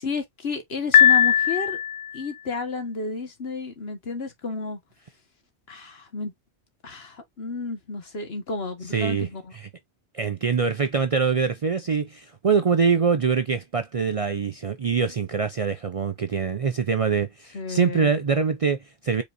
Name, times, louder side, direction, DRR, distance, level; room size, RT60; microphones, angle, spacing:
voice 1, 0.0-1.8 2.1-4.8 5.7-6.3 6.8-9.5 17.5-18.1, left 4 dB, 70° left, 1.6 m, -32 dB
Piano, 0.9-2.2, left 9 dB, 85° left, 0.9 m, -18 dB
voice 2, 8.9-9.3 9.5-9.7 10.1-19.2, right 5 dB, 45° right, 0.4 m, -24 dB
5.0 x 4.0 x 2.6 m
omnidirectional pair, 1.1 m